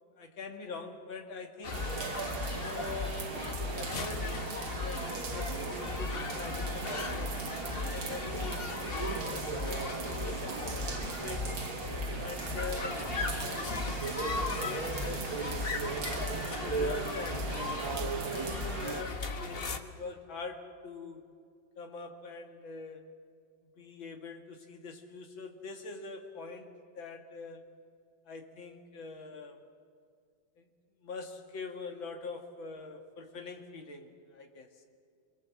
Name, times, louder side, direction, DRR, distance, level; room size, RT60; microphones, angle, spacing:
voice 1, 0.2-1.9 2.6-3.4 3.7-7.4 7.9-11.5 12.2-13.1 13.4-15.6 15.9-17.8 18.3-21.2 21.8-23.0 23.8-27.6 28.3-29.6 30.6-30.7 31.0-34.7, left 4 dB, 75° left, 3 dB, 2.8 m, -44 dB
sound 1, 1.6-19.8, left 3 dB, 35° left, 1.1 m, -37 dB
sound 2, 1.7-19.0, right 5 dB, 90° right, 2.3 m, -38 dB
27.5 x 22.0 x 7.6 m, 2.2 s
omnidirectional pair, 2.2 m